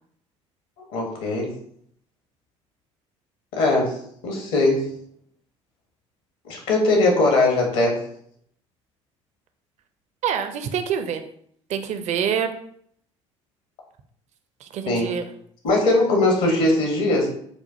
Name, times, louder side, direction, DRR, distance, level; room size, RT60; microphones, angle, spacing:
voice 1, 0.9-1.6 3.6-4.9 6.5-8.1 14.9-15.1 15.6-17.3, left 2 dB, 65° left, 1 dB, 1.3 m, -20 dB
voice 2, 10.2-11.2 11.7-12.5 14.6-15.2, right 8 dB, 50° right, 8 dB, 0.5 m, -26 dB
6.8 x 2.4 x 2.8 m, 0.66 s
figure-of-eight pair, 60°, 16 cm